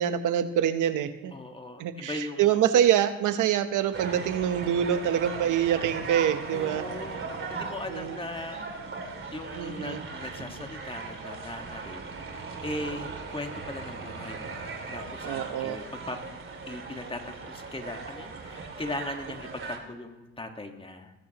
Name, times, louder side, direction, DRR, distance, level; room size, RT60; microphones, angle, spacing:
voice 1, 0.0-1.3 1.8-6.9 7.9-8.2 9.5-10.0 15.2-15.8, right 10 dB, 80° right, 10 dB, 1.0 m, -25 dB
voice 2, 1.3-2.5 6.5-8.6 9.3-16.2 16.7-21.1, left 2 dB, 20° left, 5 dB, 1.6 m, -39 dB
sound 1, 3.9-19.8, right 4 dB, 40° right, 2.7 m, -38 dB
19.5 x 15.0 x 3.0 m, 1.1 s
cardioid pair, 90°, 30 cm